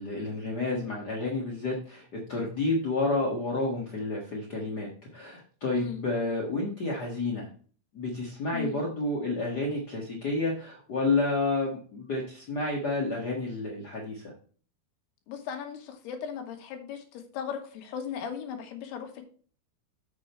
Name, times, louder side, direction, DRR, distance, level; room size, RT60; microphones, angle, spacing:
voice 1, 0.0-7.5 7.9-14.3, left 2 dB, 60° left, -1 dB, 1.0 m, -30 dB
voice 2, 15.3-19.2, left 8 dB, 90° left, 5 dB, 3.5 m, -37 dB
7.6 x 6.4 x 4.4 m, 0.42 s
omnidirectional pair, 4.5 m